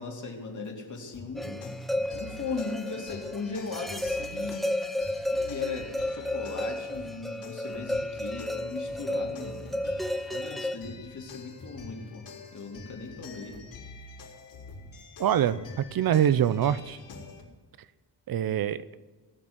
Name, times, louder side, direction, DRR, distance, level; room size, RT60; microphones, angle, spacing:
voice 1, 0.0-1.7 2.1-4.7 5.0-9.7 10.3-13.6, left 4 dB, 40° left, 1 dB, 2.6 m, -38 dB
sound 1, 0.9-17.4, left 3 dB, 75° left, 3.8 m, -46 dB
sound 2, 1.4-10.8, left 1 dB, ahead, 0.6 m, -33 dB
voice 2, 15.2-15.6 15.9-17.0 18.3-18.8, right 10 dB, 50° right, 17 dB, 0.6 m, -24 dB
18.0 x 6.1 x 9.7 m, 1.3 s
wide cardioid pair, 135°, 45 cm